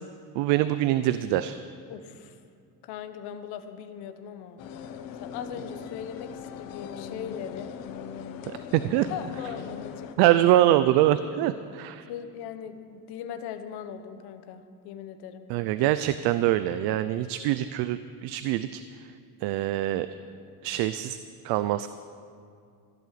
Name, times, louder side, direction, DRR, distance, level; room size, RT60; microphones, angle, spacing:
voice 1, 0.4-1.6 8.5-9.1 10.2-12.1 15.5-18.8 19.4-20.1 20.6-21.2 21.4-21.9, right 14 dB, 80° right, 12 dB, 0.6 m, -24 dB
voice 2, 1.9-2.4 2.8-4.6 5.2-7.8 9.1-10.4 12.1-15.5, left 8 dB, 75° left, 8 dB, 1.2 m, -39 dB
sound 1, 4.6-10.2, left 7 dB, 60° left, 0.9 m, -40 dB
15.0 x 11.0 x 6.7 m, 2.3 s
cardioid pair, 165°, 39 cm